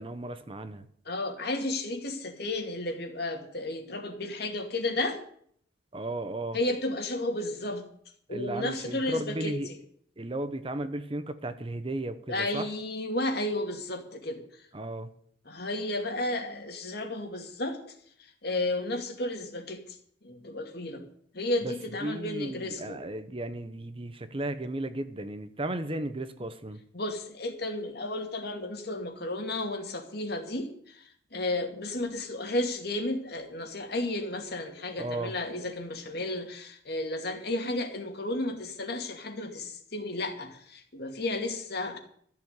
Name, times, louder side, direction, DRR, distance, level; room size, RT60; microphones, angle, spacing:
voice 1, 0.0-0.9 5.9-6.6 8.3-9.7 10.2-12.7 14.7-15.1 21.6-21.7 22.0-26.8 35.0-35.3, right 1 dB, 30° right, 10 dB, 0.9 m, -35 dB
voice 2, 1.1-5.2 6.5-7.8 8.3-9.8 12.3-14.4 15.5-17.8 18.2-20.0 20.2-21.0 21.3-23.0 26.9-42.0, left 2 dB, 60° left, 4 dB, 2.4 m, -33 dB
13.5 x 7.0 x 9.5 m, 0.64 s
head